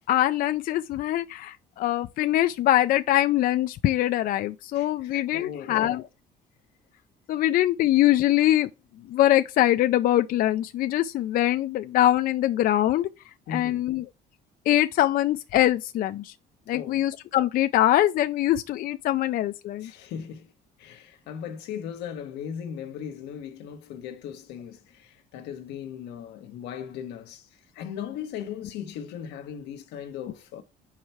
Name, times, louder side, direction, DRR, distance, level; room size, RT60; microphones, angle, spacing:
voice 1, 0.1-6.1 7.3-8.7 9.1-13.1 13.5-14.1 14.7-16.3 16.7-19.9, left 13 dB, 60° left, 0.4 m, -23 dB
voice 2, 4.7-6.0 13.5-13.9 16.7-17.1 19.8-20.5 20.8-30.6, left 8 dB, 90° left, 1.1 m, -38 dB
4.8 x 4.5 x 5.6 m
cardioid pair, 110°, 17 cm